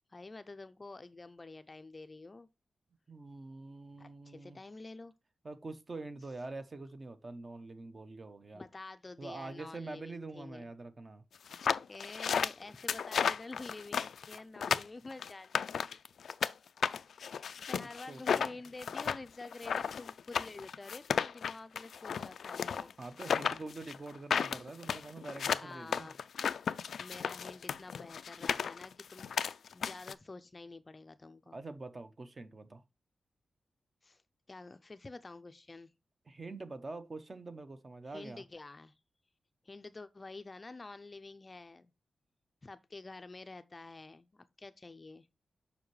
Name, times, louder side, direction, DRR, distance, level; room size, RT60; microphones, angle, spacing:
voice 1, 0.1-2.5 4.0-5.1 8.5-10.7 11.9-16.0 17.1-22.9 25.6-26.2 27.0-29.3 29.7-31.6 34.0-34.2 34.5-35.9 38.0-38.9 39.6-41.9 42.6-45.3, left 3 dB, 25° left, 0.5 m, -49 dB
voice 2, 3.1-4.6 5.4-8.7 9.2-11.2 17.8-18.5 23.0-26.1 31.5-32.8 36.2-38.4, right 3 dB, 30° right, 0.7 m, -45 dB
sound 1, 11.5-16.5 16.8-30.1, left 7 dB, 90° left, 0.4 m, -34 dB
7.0 x 5.3 x 3.2 m
wide cardioid pair, 150°, 0 cm